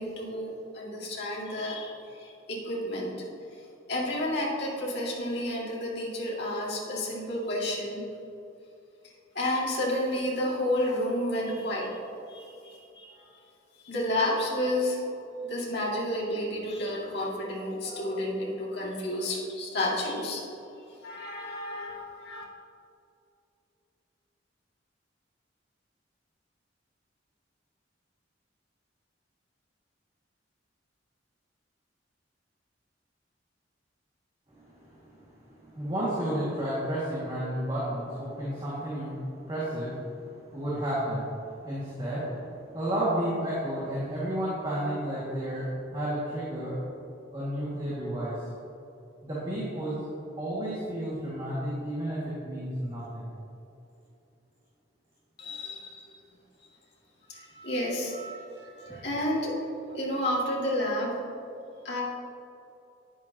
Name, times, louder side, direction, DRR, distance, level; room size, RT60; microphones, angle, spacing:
voice 1, 0.0-3.1 3.9-8.0 9.3-13.2 13.8-15.0 15.4-20.4 21.0-22.4 55.4-56.0 57.3-61.4 61.8-62.0, left 1 dB, 60° left, -4 dB, 2.2 m, -31 dB
voice 2, 34.5-46.8 47.3-48.4 49.2-50.0 50.4-53.3 55.6-56.1 58.9-59.0, right 1 dB, 25° right, -9 dB, 2.0 m, -32 dB
9.9 x 9.9 x 2.9 m, 2.7 s
head